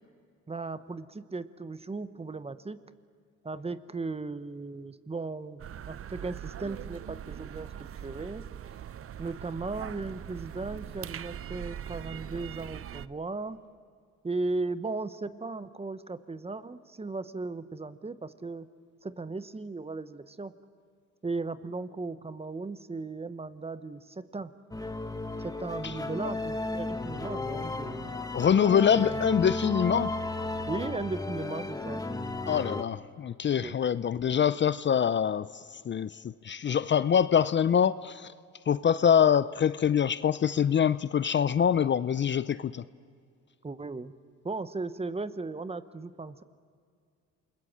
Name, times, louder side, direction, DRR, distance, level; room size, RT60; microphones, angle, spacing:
voice 1, 0.5-2.8 3.4-8.5 9.2-13.6 14.2-18.7 19.0-20.6 21.2-24.5 25.4-28.2 29.0-29.2 30.7-32.0 32.4-32.7 33.6-33.8 43.6-44.2 44.4-46.4, right 3 dB, 20° right, 13 dB, 1.0 m, -36 dB
sound 1, 5.6-13.1, right 10 dB, 45° right, 0.7 m, -41 dB
sound 2, 24.7-32.8, left 2 dB, 10° left, 1.4 m, -34 dB
voice 2, 28.3-30.2 32.5-38.3 38.7-42.8, left 8 dB, 40° left, 16 dB, 0.5 m, -25 dB
28.5 x 21.0 x 7.4 m, 2.2 s
cardioid pair, 90°, 30 cm